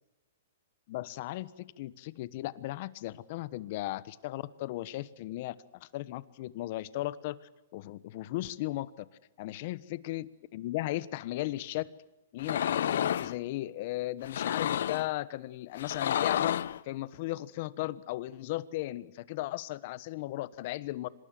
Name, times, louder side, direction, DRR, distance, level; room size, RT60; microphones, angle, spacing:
voice 1, 0.9-5.5 5.8-7.4 7.7-9.1 9.4-11.8 12.3-16.6 16.8-21.1, left 17 dB, 50° left, 17 dB, 1.2 m, -36 dB
sound 1, 12.4-13.3 14.2-15.1 15.8-16.8, left 10 dB, 70° left, 0.8 m, -30 dB
26.0 x 19.5 x 7.8 m, 1.0 s
hypercardioid pair, 145°, 0 cm